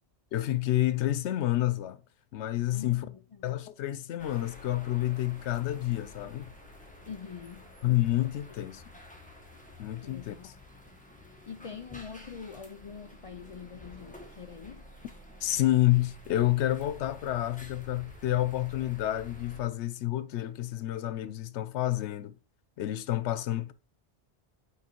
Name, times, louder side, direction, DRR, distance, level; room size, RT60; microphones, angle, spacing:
voice 1, 0.3-2.0 2.3-3.1 3.4-6.5 7.8-8.8 9.8-10.5 15.4-22.4 22.8-23.7, left 14 dB, 90° left, 0.9 m, -29 dB
voice 2, 2.7-3.6 7.1-7.7 8.6-9.0 10.0-10.5 11.5-14.9, left 6 dB, 55° left, 0.3 m, -45 dB
sound 1, 4.2-19.6, left 1 dB, 5° left, 1.4 m, -50 dB
8.7 x 3.9 x 4.4 m
omnidirectional pair, 1.1 m